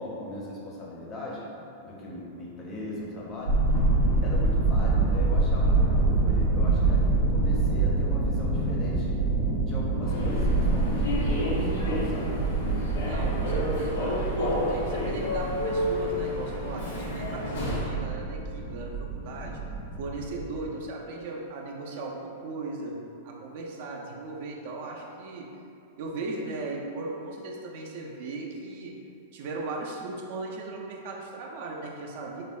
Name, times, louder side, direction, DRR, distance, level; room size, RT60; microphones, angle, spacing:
voice 1, 0.0-1.4 1.8-3.6 4.2-9.2 9.7-12.8, left 1 dB, 25° left, -4 dB, 0.4 m, -39 dB
sound 1, 3.4-20.7, right 3 dB, 85° right, 0.7 m, -26 dB
Human voice / Subway metro underground, 10.0-18.0, left 1 dB, 90° left, 0.7 m, -30 dB
voice 2, 13.0-19.6 20.0-25.6 26.0-29.0 29.3-32.4, right 2 dB, 55° right, -1 dB, 0.3 m, -37 dB
3.4 x 2.1 x 2.3 m, 2.6 s
supercardioid pair, 155°, 0 cm